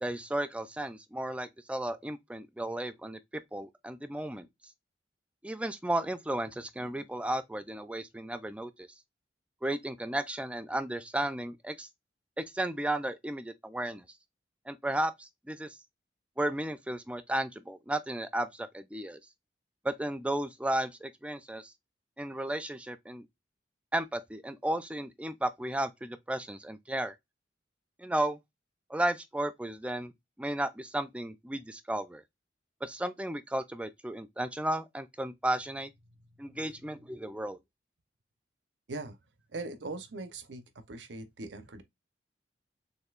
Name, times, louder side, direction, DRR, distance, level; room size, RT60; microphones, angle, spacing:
voice 1, 0.0-3.2 3.5-4.5 5.4-8.9 9.6-11.9 12.4-14.0 14.7-15.8 16.4-19.2 19.8-21.7 22.2-23.3 23.9-27.1 28.0-28.4 28.9-30.1 30.4-32.2 32.8-35.9 36.4-37.6, right 1 dB, 5° right, 0.4 m, -34 dB
voice 2, 36.1-36.7 38.9-39.2 39.5-41.8, right 3 dB, 85° right, 0.8 m, -41 dB
6.5 x 2.6 x 2.4 m
head